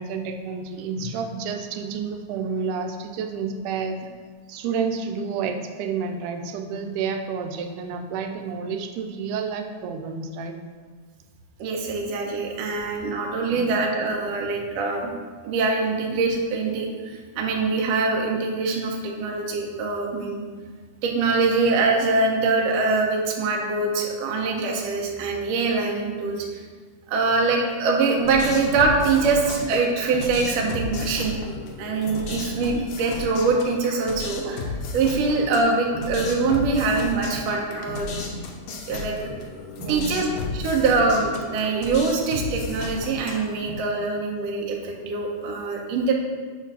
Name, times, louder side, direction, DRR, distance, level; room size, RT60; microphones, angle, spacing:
voice 1, 0.0-4.0 4.5-10.6 13.6-13.9 26.4-26.5 39.8-40.3, right 5 dB, 90° right, 4 dB, 2.1 m, -30 dB
voice 2, 11.6-15.1 15.4-20.4 21.0-26.6 27.1-31.3 31.8-38.1 38.9-39.1 39.9-40.3 40.5-46.1, right 4 dB, 70° right, 0 dB, 1.7 m, -23 dB
sound 1, 28.2-43.7, left 3 dB, 85° left, 1.2 m, -33 dB
4.9 x 4.4 x 5.4 m, 1.5 s
omnidirectional pair, 3.6 m